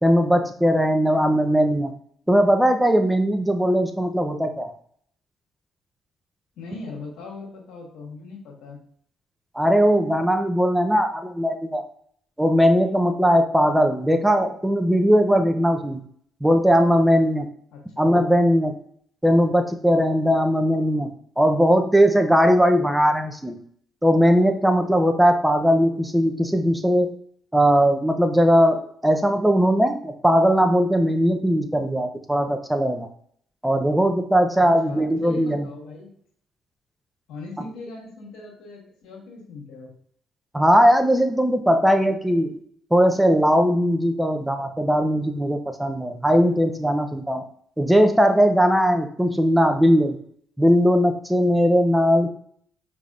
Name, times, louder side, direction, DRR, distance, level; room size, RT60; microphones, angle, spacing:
voice 1, 0.0-1.9 2.3-4.7 9.5-11.8 12.4-16.0 16.4-17.5 18.0-18.7 19.2-21.1 21.4-23.6 24.0-27.1 27.5-33.1 33.6-35.6 40.5-42.6 42.9-47.4 47.8-50.2 50.6-52.3, equal, 5° right, 6 dB, 0.6 m, -19 dB
voice 2, 6.6-8.8 17.7-18.1 34.6-36.1 37.3-39.9, left 3 dB, 85° left, -1 dB, 1.4 m, -39 dB
5.4 x 3.4 x 2.4 m, 0.62 s
cardioid pair, 80°, 0 cm